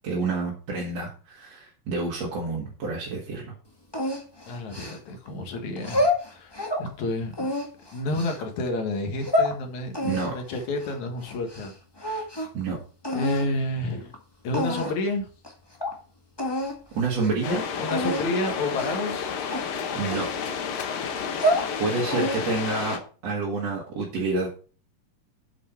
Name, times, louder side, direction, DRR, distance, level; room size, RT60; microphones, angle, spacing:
voice 1, 0.0-3.5 10.0-10.3 12.5-12.8 17.0-17.6 19.9-20.3 21.8-24.6, right 3 dB, 55° right, -3 dB, 3.0 m, -28 dB
sound 1, 3.9-5.3 5.8-6.9 7.3-8.4 9.0-9.5 9.9-11.7 12.0-12.6 13.0-13.5 14.1-14.2 14.5-15.1 15.4-15.5 15.8-15.9 16.4-16.8 17.1-17.3 17.9-18.3 18.7-19.1 19.5-20.7 21.2-21.7 22.1-22.6, left 1 dB, 25° left, 0.5 m, -28 dB
voice 2, 4.5-7.5 7.9-11.7 12.0-12.3 13.1-14.1 14.4-15.3 17.8-19.3 21.9-22.1, left 2 dB, 65° left, 4 dB, 2.8 m, -30 dB
sound 2, 17.4-23.0, left 6 dB, 85° left, 3.0 m, -31 dB
8.2 x 7.8 x 4.4 m, 0.38 s
omnidirectional pair, 3.9 m